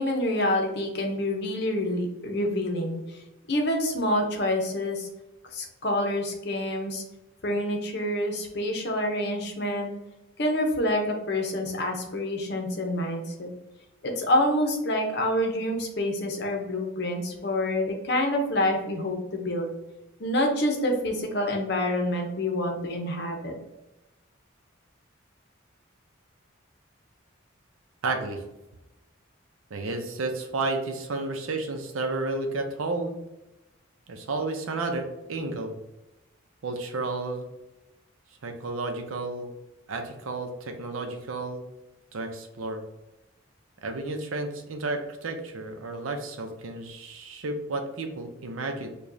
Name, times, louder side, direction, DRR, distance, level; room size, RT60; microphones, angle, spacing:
voice 1, 0.0-3.0 3.5-5.1 5.5-7.0 7.4-9.9 10.4-13.5 14.0-19.7 20.2-23.5, left 1 dB, 55° left, 2 dB, 0.7 m, -27 dB
voice 2, 28.0-28.4 29.7-33.2 34.1-35.8 36.6-37.5 38.4-39.5 39.9-41.7 42.1-42.8 43.8-48.9, right 3 dB, 85° right, 5 dB, 0.6 m, -32 dB
4.8 x 2.3 x 2.6 m, 0.96 s
head